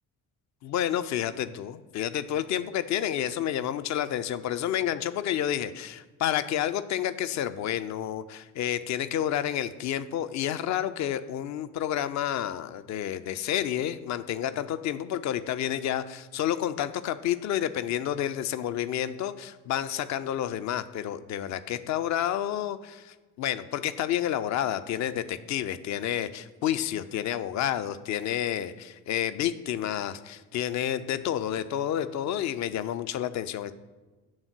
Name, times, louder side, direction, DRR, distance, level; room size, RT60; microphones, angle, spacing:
voice 1, 0.6-33.7, left 11 dB, 40° left, 13 dB, 0.5 m, -30 dB
7.9 x 3.7 x 5.9 m, 1.2 s
figure-of-eight pair, 45°, 45 cm